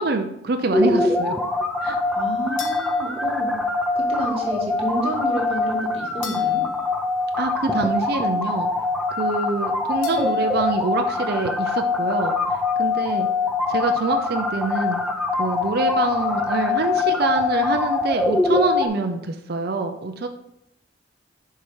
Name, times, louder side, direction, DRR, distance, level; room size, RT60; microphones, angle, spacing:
voice 1, 0.0-1.4 1.8-2.0 7.4-8.7 9.2-12.4 12.8-13.3 13.7-15.0 15.4-20.3, right 3 dB, 55° right, 5 dB, 0.6 m, -25 dB
sound 1, 0.7-18.9, left 3 dB, ahead, 0.5 m, -23 dB
voice 2, 2.1-6.7, equal, 30° right, -2 dB, 1.9 m, -30 dB
sound 2, 2.6-4.1 6.2-8.1 10.0-11.2, left 6 dB, 90° left, 1.4 m, -42 dB
7.2 x 4.8 x 4.8 m, 0.78 s
head